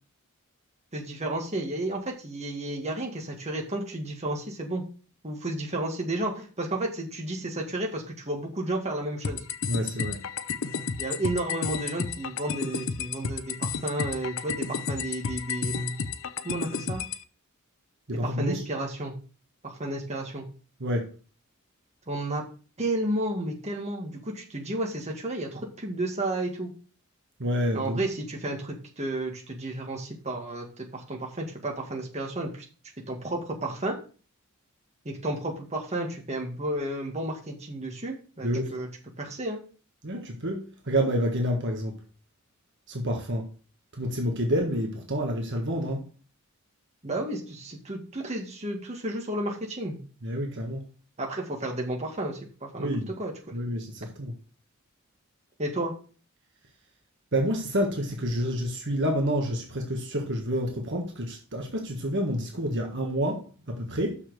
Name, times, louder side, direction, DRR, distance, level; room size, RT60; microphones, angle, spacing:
voice 1, 0.9-4.9 5.2-9.4 11.0-15.9 16.4-17.0 18.2-19.1 19.6-20.5 22.1-22.4 22.8-26.7 27.7-32.7 33.1-34.0 35.1-38.9 39.2-39.6 47.0-50.0 51.2-52.9 53.2-53.3 55.6-55.9, right 1 dB, 30° right, 1.9 m, -32 dB
sound 1, 9.2-17.2, left 5 dB, 65° left, 0.6 m, -32 dB
voice 2, 9.6-10.2 18.1-18.6 20.8-21.0 27.4-28.0 38.4-38.7 40.0-42.0 42.9-43.5 43.9-46.0 50.2-50.9 52.8-53.1 53.5-54.3 57.3-64.2, equal, 55° right, 1.5 m, -28 dB
6.4 x 5.7 x 6.4 m
head